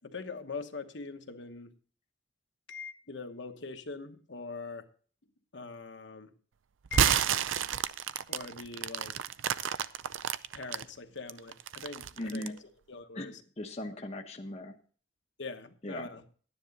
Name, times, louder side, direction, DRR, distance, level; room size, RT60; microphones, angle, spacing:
voice 1, 0.0-1.8 2.7-4.9 5.5-6.3 6.9-7.3 8.3-9.2 10.5-13.4 15.4-16.2, left 4 dB, 65° left, 1.1 m, -42 dB
sound 1, 6.9-10.8 11.3-12.6, right 8 dB, 90° right, 0.5 m, -30 dB
voice 2, 12.2-12.6 13.1-14.7 15.8-16.1, left 1 dB, 35° left, 0.9 m, -39 dB
12.0 x 10.0 x 4.0 m
head